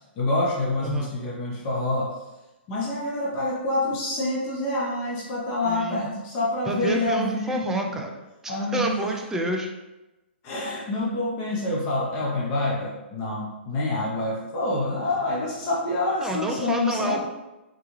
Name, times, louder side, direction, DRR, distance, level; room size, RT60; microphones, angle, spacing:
voice 1, 0.2-2.2 2.7-8.0 8.5-8.9 10.4-17.3, left 2 dB, 35° left, -4 dB, 0.8 m, -27 dB
voice 2, 0.8-1.1 5.7-6.1 6.7-8.1 8.4-9.7 16.2-17.3, right 2 dB, 5° right, 2 dB, 0.4 m, -29 dB
3.8 x 2.2 x 3.1 m, 1.0 s
hypercardioid pair, 130°, 6 cm